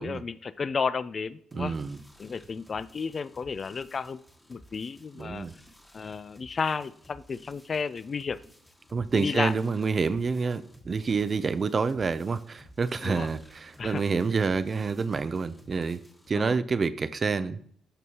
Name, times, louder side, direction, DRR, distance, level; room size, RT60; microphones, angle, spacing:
voice 1, 0.0-1.8 2.2-4.2 4.5-5.5 5.9-8.4 9.1-9.5 13.0-13.3 13.8-14.0 16.3-16.6, left 5 dB, 40° left, 16 dB, 0.4 m, -32 dB
sound 1, 1.5-16.3, equal, 10° left, 1.3 m, -55 dB
voice 2, 1.5-2.0 5.2-5.5 8.9-16.0 16.3-17.6, right 5 dB, 40° right, 13 dB, 0.4 m, -28 dB
12.5 x 5.3 x 2.9 m, 0.62 s
cardioid pair, 90°, 0 cm